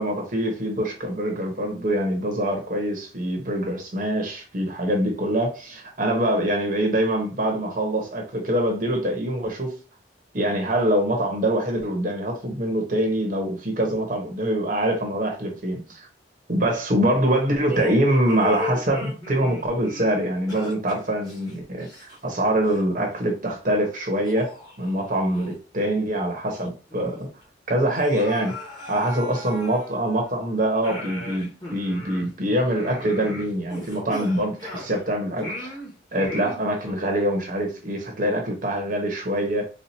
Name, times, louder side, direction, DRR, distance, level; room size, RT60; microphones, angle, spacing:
voice 1, 0.0-9.7 10.3-16.1 16.5-27.3 27.7-28.5 28.9-35.8 36.1-39.7, right 1 dB, 45° right, 1.0 m, -24 dB
sound 1, 17.7-22.4 22.7-22.9 23.5-23.6 24.2-25.5 25.9-26.0 26.4-27.0 27.3-27.4 27.9-30.3 30.8-35.0 35.4-36.9, left 1 dB, 20° left, 1.4 m, -37 dB
4.3 x 2.5 x 2.7 m
head